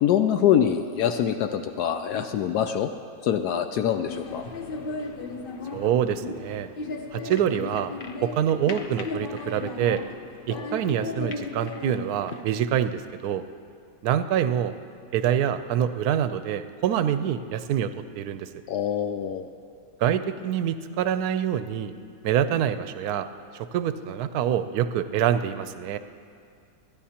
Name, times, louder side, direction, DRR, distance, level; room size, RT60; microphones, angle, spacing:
voice 1, 0.0-2.9 3.2-4.5 18.7-19.5, left 9 dB, 75° left, 7 dB, 1.1 m, -24 dB
sound 1, 4.1-12.4, left 3 dB, 50° left, 0.6 m, -35 dB
voice 2, 5.7-6.7 7.1-7.9 8.2-10.0 10.5-13.4 14.0-14.7 15.1-18.5 20.0-21.9 22.2-23.3 23.5-26.0, right 9 dB, 75° right, 11 dB, 1.0 m, -26 dB
28.5 x 10.5 x 2.9 m, 2.3 s
omnidirectional pair, 1.8 m